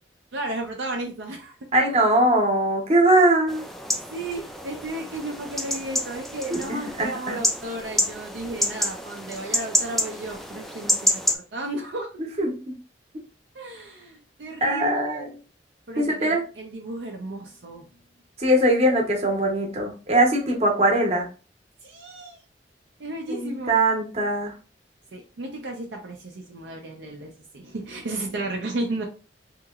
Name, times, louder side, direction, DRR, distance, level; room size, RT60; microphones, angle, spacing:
voice 1, 0.3-1.7 4.1-12.3 13.5-15.3 15.9-17.9 21.8-22.4 23.0-23.7 25.1-29.1, right 2 dB, 70° right, 1 dB, 0.5 m, -34 dB
voice 2, 1.7-3.6 6.5-7.4 12.4-12.6 14.6-15.3 16.0-16.4 18.4-21.3 23.3-24.5, right 1 dB, 35° right, 1 dB, 0.9 m, -21 dB
sound 1, 3.5-11.3, left 1 dB, ahead, 0.3 m, -28 dB
2.9 x 2.8 x 2.3 m, 0.35 s
head